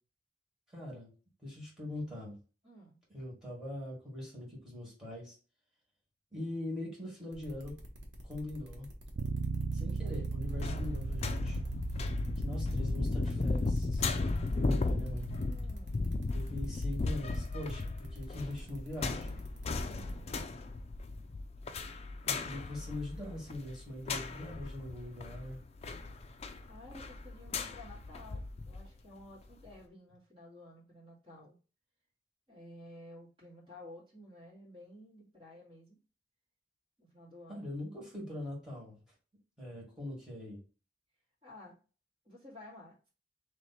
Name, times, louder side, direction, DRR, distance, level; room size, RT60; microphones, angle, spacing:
voice 1, 0.7-1.1 1.4-2.4 3.1-5.4 6.3-7.8 8.2-8.9 9.7-11.6 12.4-14.1 14.5-15.3 16.3-19.4 22.2-25.6 37.5-39.0 39.6-40.6, left 1 dB, 5° right, -5 dB, 2.0 m, -42 dB
voice 2, 2.6-3.0 15.1-16.1 19.9-20.3 26.7-31.5 32.5-36.0 37.0-37.7 41.4-41.8 42.2-43.1, left 1 dB, 25° right, -6 dB, 2.1 m, -53 dB
sound 1, 7.3-20.2, equal, 90° right, 1.3 m, -50 dB
Bass guitar, 9.2-15.4, right 4 dB, 70° right, 0.4 m, -39 dB
sound 2, 10.5-28.9 29.3-29.4, left 3 dB, 35° left, 0.4 m, -36 dB
3.2 x 3.2 x 4.2 m, 0.36 s
head